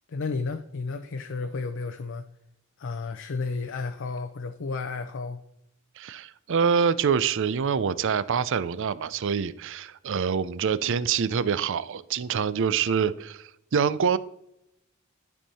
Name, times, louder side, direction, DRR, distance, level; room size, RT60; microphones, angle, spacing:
voice 1, 0.1-2.2 2.8-5.4, left 4 dB, 60° left, 0.6 m, -32 dB
voice 2, 6.0-14.2, right 6 dB, 60° right, 0.5 m, -25 dB
12.0 x 5.5 x 4.2 m
head